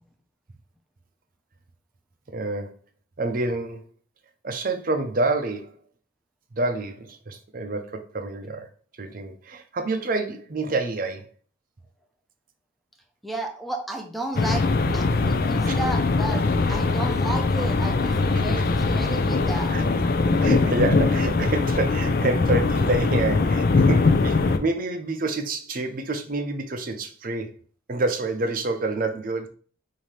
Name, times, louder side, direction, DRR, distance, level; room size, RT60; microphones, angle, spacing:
voice 1, 2.3-2.8 3.2-3.8 4.4-5.8 6.5-8.7 9.0-11.3 15.6-15.8 16.7-16.8 18.3-18.6 19.7-19.9 20.4-27.6 27.9-29.5, right 2 dB, 45° right, 0.6 m, -28 dB
voice 2, 13.2-19.8, right 1 dB, ahead, 0.6 m, -33 dB
sound 1, 14.3-24.6, left 3 dB, 50° left, 0.4 m, -21 dB
5.6 x 2.7 x 3.2 m
head